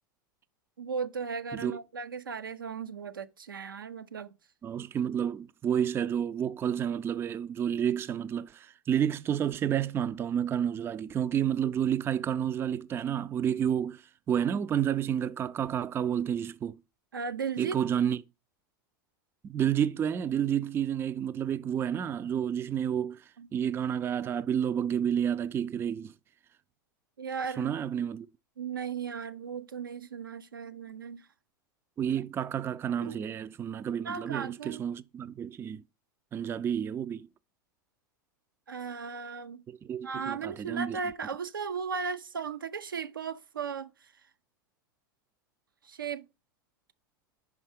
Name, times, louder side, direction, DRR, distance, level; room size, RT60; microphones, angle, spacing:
voice 1, 0.8-4.3 17.1-17.8 23.4-23.5 27.2-27.7 28.6-31.3 33.0-33.2 34.0-34.8 38.7-39.6 40.0-44.1 45.8-46.2, right 6 dB, 85° right, 0.6 m, -36 dB
voice 2, 4.6-14.0 14.3-16.8 17.6-18.2 19.4-23.2 23.5-26.1 27.6-28.3 32.0-35.8 36.3-37.3 39.7-41.0, right 9 dB, 20° right, 0.4 m, -30 dB
5.4 x 4.8 x 5.0 m
hypercardioid pair, 95°, 11 cm